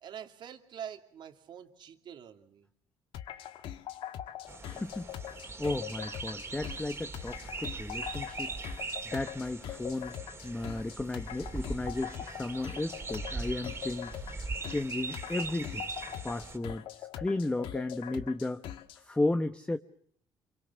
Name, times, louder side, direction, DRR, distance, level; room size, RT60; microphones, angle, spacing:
voice 1, 0.0-2.7, right 9 dB, 60° right, 6 dB, 2.6 m, -45 dB
sound 1, 3.1-19.0, left 11 dB, 75° left, 1.5 m, -43 dB
sound 2, 4.5-16.6, right 4 dB, 25° right, 3.4 m, -41 dB
voice 2, 4.7-5.1 5.6-8.5 9.1-10.2 10.4-14.2 14.7-15.9 16.2-18.6 19.0-19.8, left 2 dB, 15° left, 9 dB, 1.1 m, -34 dB
28.0 x 23.5 x 7.2 m, 0.64 s
cardioid pair, 95°, 9 cm